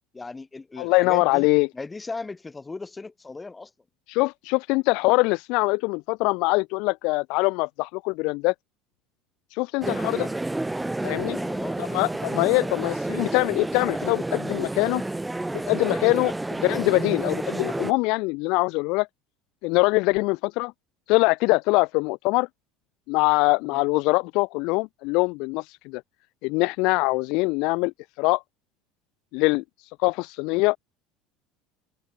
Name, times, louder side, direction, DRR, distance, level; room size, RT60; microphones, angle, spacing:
voice 1, 0.1-1.5 1.7-3.7 11.3-11.8 12.3-12.8 23.7-23.8, left 3 dB, 15° left, 5.4 m, -37 dB
voice 2, 0.8-1.7 4.1-8.5 9.5-10.3 11.0-11.4 11.8-15.0 15.7-16.3 16.6-19.1 19.6-20.7 21.1-22.5 23.1-26.0 26.4-27.9 28.2-28.4 29.3-29.6 30.0-30.8, left 26 dB, 65° left, 0.6 m, -23 dB
sound 1, 9.8-17.9, right 2 dB, 5° right, 7.4 m, -30 dB
cardioid pair, 140°, 0 cm